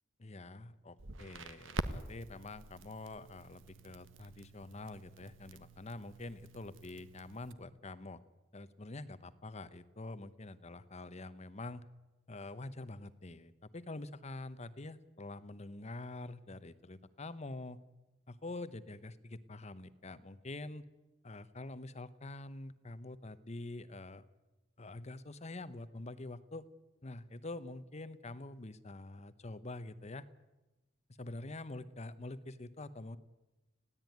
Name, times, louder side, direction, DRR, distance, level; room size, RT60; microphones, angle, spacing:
voice 1, 0.2-8.2 8.5-11.8 12.3-17.8 18.3-20.8 21.2-24.3 24.8-26.6 27.0-30.2 31.2-33.2, left 2 dB, 35° left, 14 dB, 0.9 m, -46 dB
Crackle, 1.0-7.5, right 2 dB, 75° right, 1.1 m, -46 dB
20.0 x 16.0 x 9.4 m, 1.1 s
head